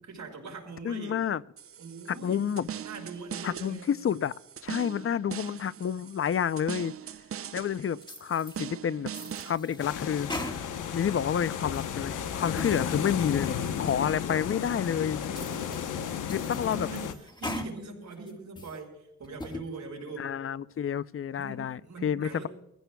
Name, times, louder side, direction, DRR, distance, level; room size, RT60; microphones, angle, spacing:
voice 1, 0.1-1.2 1.8-2.4 2.8-3.9 15.2-15.9 16.3-17.1 17.4-20.3 21.3-22.5, right 3 dB, 70° right, 5.4 m, -42 dB
voice 2, 0.8-1.4 2.1-2.7 3.4-4.3 4.6-6.9 7.5-10.6 10.9-15.2 16.3-16.9 20.2-22.5, left 8 dB, 45° left, 0.6 m, -29 dB
sound 1, 1.6-9.6, right 9 dB, 50° right, 0.5 m, -41 dB
sound 2, 8.0-8.6 9.1-11.0 11.3-12.0 12.4-12.8 13.3-13.4 14.0-14.1 14.7-14.8 15.2-15.9 16.3-17.7 18.1-18.8 19.2-19.6, left 1 dB, 15° left, 1.6 m, -40 dB
sound 3, 9.8-17.1, left 8 dB, 90° left, 0.9 m, -33 dB
24.0 x 15.5 x 2.3 m
cardioid pair, 60°, 30 cm